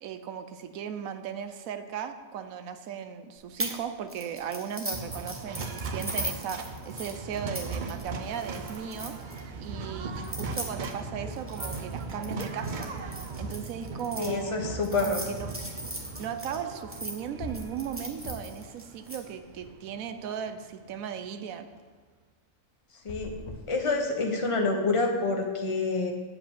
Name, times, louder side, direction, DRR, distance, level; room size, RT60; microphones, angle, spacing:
voice 1, 0.0-9.2 9.6-12.9 13.4-14.6 15.0-15.5 16.2-21.7, right 8 dB, 80° right, 9 dB, 1.1 m, -37 dB
sound 1, 3.6-3.8 4.1-9.4 10.2-14.3 14.8-17.1 17.5-19.2, right 1 dB, 10° right, 1.0 m, -38 dB
sound 2, 4.9-21.1, right 3 dB, 50° right, 0.5 m, -39 dB
voice 2, 14.2-15.2 23.0-23.3 23.7-26.1, left 3 dB, 25° left, 2 dB, 1.0 m, -27 dB
sound 3, 17.4-18.7 19.0-20.1 22.9-24.5, left 2 dB, 70° left, 1.2 m, -43 dB
7.8 x 5.0 x 7.2 m, 1.4 s
omnidirectional pair, 1.5 m